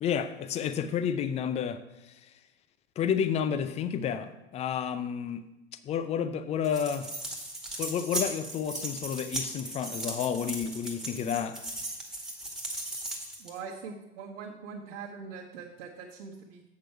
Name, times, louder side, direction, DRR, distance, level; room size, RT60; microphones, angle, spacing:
voice 1, 0.0-1.8 3.0-5.5 5.8-7.1 7.8-11.6, left 8 dB, 20° left, 0.5 m, -30 dB
sound 1, 6.6-13.6, right 1 dB, ahead, 1.8 m, -37 dB
voice 2, 13.4-16.6, right 5 dB, 55° right, 1.4 m, -42 dB
7.6 x 6.8 x 4.5 m
hypercardioid pair, 95°, 35 cm